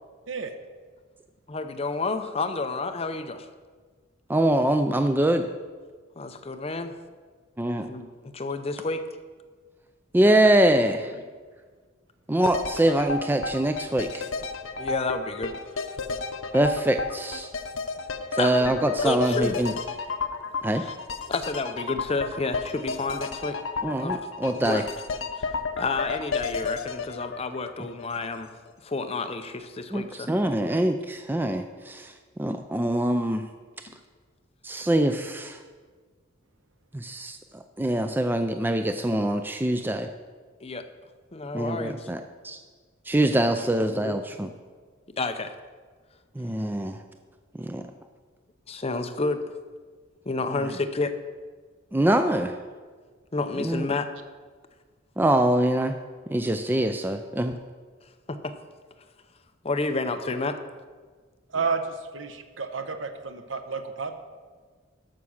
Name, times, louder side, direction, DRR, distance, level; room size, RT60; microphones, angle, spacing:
voice 1, 1.5-3.5 6.2-6.9 7.9-9.0 14.8-15.5 18.3-19.8 20.7-20.9 21.3-23.6 24.0-24.2 24.5-24.8 25.4-28.5 28.8-30.3 33.9-34.0 40.6-40.8 41.3-42.1 43.9-44.2 45.2-45.5 48.7-49.4 50.3-51.1 53.3-54.1 58.3-58.5 59.6-60.6, left 3 dB, 30° left, 8 dB, 0.6 m, -30 dB
voice 2, 4.3-5.5 7.6-7.9 10.1-11.1 12.3-14.3 16.5-17.5 18.3-19.7 20.6-20.8 23.8-24.8 29.9-32.1 32.4-33.4 34.6-35.6 36.9-37.4 37.8-40.1 41.5-42.6 43.1-44.5 46.4-47.0 47.5-47.8 51.9-52.6 53.6-53.9 55.2-56.0 56.3-57.6, right 1 dB, 10° right, 7 dB, 0.4 m, -24 dB
sound 1, 12.4-28.4 28.7-28.8, left 4 dB, 85° left, 0.8 m, -32 dB
voice 3, 62.1-64.2, right 5 dB, 75° right, 8 dB, 1.0 m, -31 dB
13.0 x 5.9 x 6.4 m, 1.5 s
head